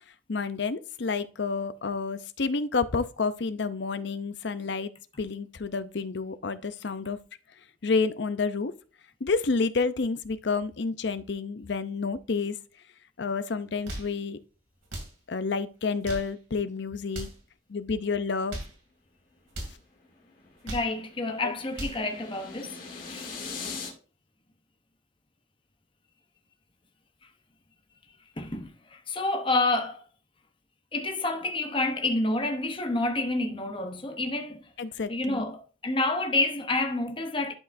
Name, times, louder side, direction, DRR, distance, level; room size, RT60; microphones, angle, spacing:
voice 1, 0.3-4.9 5.2-7.2 7.8-8.7 9.2-12.6 13.2-14.4 15.3-17.3 17.7-18.6 21.4-21.5 34.8-35.5, left 4 dB, 65° left, 0.6 m, -29 dB
sound 1, 13.7-14.2 14.8-15.2 15.9-16.4 17.0-17.4 18.3-18.8 19.5-19.8 20.4-21.0 21.5-22.1, right 1 dB, 85° right, 2.6 m, -38 dB
sound 2, 19.6-23.9, left 4 dB, 45° left, 1.9 m, -41 dB
voice 2, 20.6-22.8 23.1-23.3 28.4-30.0 30.9-34.7 35.1-37.5, left 2 dB, 25° left, 0.8 m, -29 dB
11.5 x 4.7 x 2.6 m
head